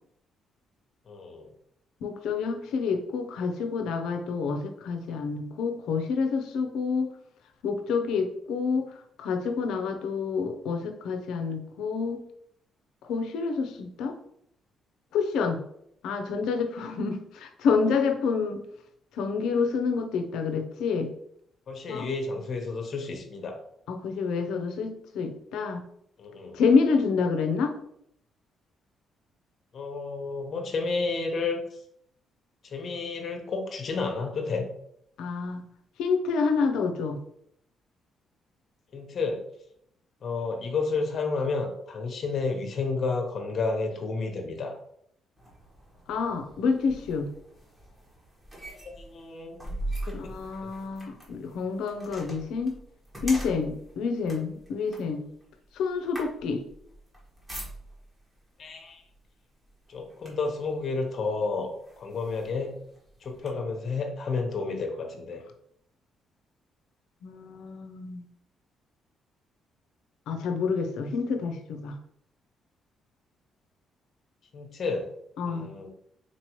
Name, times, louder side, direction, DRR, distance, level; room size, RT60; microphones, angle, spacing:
voice 1, 1.1-1.5 21.7-23.6 26.2-26.6 29.7-31.8 32.6-34.7 38.9-39.4 40.2-44.8 48.8-49.6 50.1-50.4 58.6-59.0 59.9-62.8 63.2-65.4 74.5-75.1 75.5-75.9, left 4 dB, 55° left, 3 dB, 1.0 m, -31 dB
voice 2, 2.0-7.1 7.6-8.9 9.2-12.2 13.1-14.2 15.1-15.6 16.0-18.6 19.2-21.1 21.9-22.1 23.9-25.8 26.5-27.7 35.2-35.7 36.0-37.2 46.1-47.3 50.1-52.8 53.2-55.2 55.7-56.6 67.2-68.2 70.3-71.9 75.4-75.7, left 5 dB, 85° left, 6 dB, 0.6 m, -28 dB
sound 1, 45.4-58.2 59.0-59.2 59.6-60.7 61.3-61.4 61.8-63.5, right 1 dB, 20° right, 1.5 m, -41 dB
4.3 x 3.0 x 3.0 m, 0.70 s
cardioid pair, 90°, 0 cm